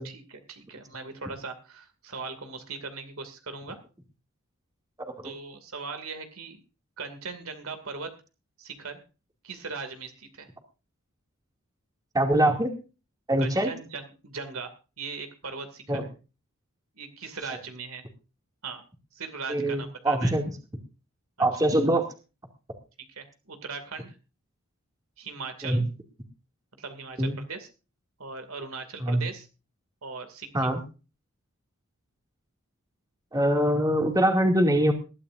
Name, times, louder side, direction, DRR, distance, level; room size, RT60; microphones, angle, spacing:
voice 1, 0.0-3.8 5.2-6.6 7.0-8.1 8.6-9.0 9.4-10.5 13.4-14.7 15.0-16.1 16.9-18.0 18.6-18.8 19.1-20.3 23.1-24.2 25.2-25.8 26.8-27.7 28.2-29.5 30.0-30.7, right 4 dB, 75° right, 8 dB, 2.5 m, -39 dB
voice 2, 12.1-12.7 13.3-13.7 15.9-16.0 19.5-20.4 21.4-22.1 25.6-25.8 27.2-27.4 29.0-29.3 30.5-30.8 33.3-34.9, right 1 dB, 20° right, 3 dB, 2.4 m, -23 dB
20.5 x 12.5 x 2.6 m, 0.32 s
head